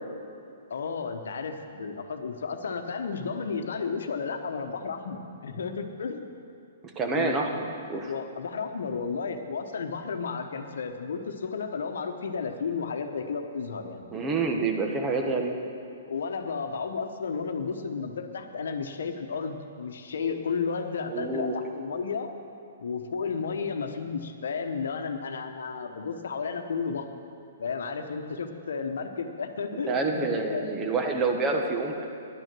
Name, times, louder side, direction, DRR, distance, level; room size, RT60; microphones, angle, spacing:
voice 1, 0.7-6.3 7.1-7.6 8.1-14.0 15.2-15.4 16.1-22.3 22.8-27.1 27.6-30.7, left 5 dB, 75° left, 6 dB, 1.0 m, -33 dB
voice 2, 6.9-8.1 14.1-15.6 21.1-21.5 29.9-32.0, right 3 dB, 20° right, 3 dB, 1.2 m, -27 dB
11.0 x 9.0 x 6.1 m, 2.6 s
hypercardioid pair, 130°, 0 cm